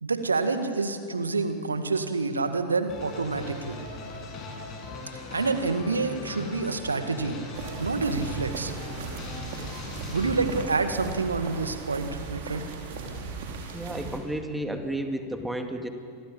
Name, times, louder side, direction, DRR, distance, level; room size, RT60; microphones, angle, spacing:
voice 1, 0.0-3.8 5.1-7.4 7.8-8.7 10.1-12.7, right 3 dB, 75° right, 9 dB, 1.9 m, -28 dB
sound 1, 2.9-10.6, left 3 dB, 35° left, 7.3 m, -39 dB
sound 2, 7.5-14.2, right 4 dB, 55° right, 5.0 m, -37 dB
voice 2, 13.7-15.9, right 1 dB, 5° right, 5 dB, 2.4 m, -32 dB
28.0 x 24.0 x 8.9 m, 2.3 s
figure-of-eight pair, 90°, 0 cm